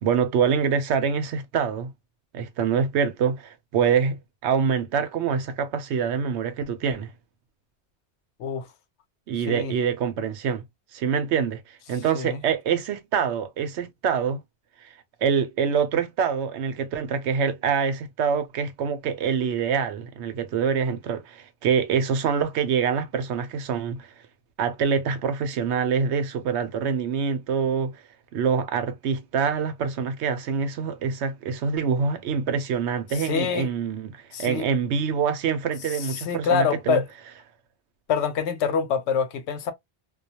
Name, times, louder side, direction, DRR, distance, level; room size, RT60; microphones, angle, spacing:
voice 1, 0.0-1.9 2.3-7.1 9.3-10.6 10.9-14.4 15.2-24.1 24.6-28.0 28.3-37.0, right 6 dB, 80° right, 0.9 m, -25 dB
voice 2, 33.2-33.7 34.3-34.7 36.1-37.0 38.1-39.7, left 6 dB, 85° left, 0.9 m, -25 dB
2.3 x 2.3 x 2.7 m
omnidirectional pair, 1.1 m